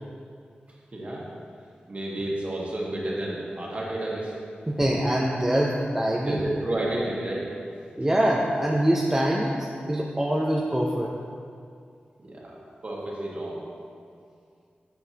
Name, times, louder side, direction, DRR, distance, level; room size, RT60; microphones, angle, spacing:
voice 1, 0.9-1.3 1.9-4.3 6.2-7.5 12.2-12.5 12.8-13.6, right 1 dB, 45° right, -4 dB, 1.5 m, -30 dB
voice 2, 4.7-6.4 8.0-11.2, right 1 dB, 15° right, -2 dB, 0.5 m, -24 dB
8.8 x 5.8 x 2.8 m, 2.3 s
wide cardioid pair, 95°, 3 cm